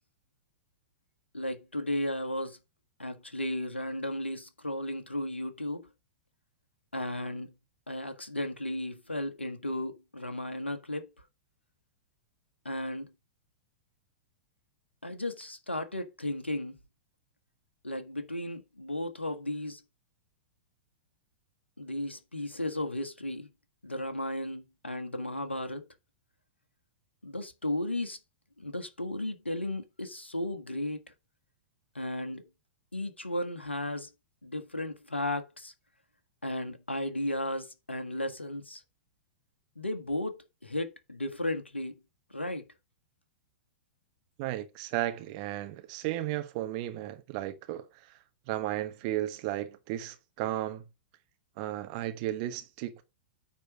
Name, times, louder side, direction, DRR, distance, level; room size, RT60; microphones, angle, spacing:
voice 1, 1.3-2.6 3.0-5.9 6.9-7.5 7.9-11.1 12.6-13.1 15.0-16.8 17.8-19.8 21.8-23.5 23.8-25.8 27.2-28.2 28.6-31.0 31.9-32.4 32.9-34.1 34.4-35.7 36.4-38.8 39.8-42.0 42.3-42.7, left 1 dB, 85° left, 1.4 m, -34 dB
voice 2, 44.4-47.8 48.5-50.8 51.6-53.0, right 14 dB, 40° right, 1.1 m, -34 dB
9.3 x 4.1 x 6.1 m
figure-of-eight pair, 100°, 6 cm